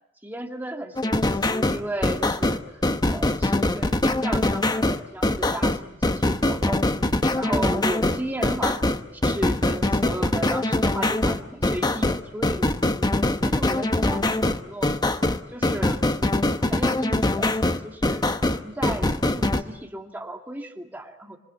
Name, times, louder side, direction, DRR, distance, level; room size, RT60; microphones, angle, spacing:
voice 1, 0.2-2.6 3.1-6.9 7.3-13.1 13.4-15.0 15.5-16.0 16.6-18.2 18.5-21.4, right 1 dB, 10° right, 2 dB, 2.3 m, -34 dB
sound 1, 1.0-19.6, left 1 dB, 20° left, 1.0 m, -23 dB
27.0 x 24.5 x 8.3 m, 0.83 s
head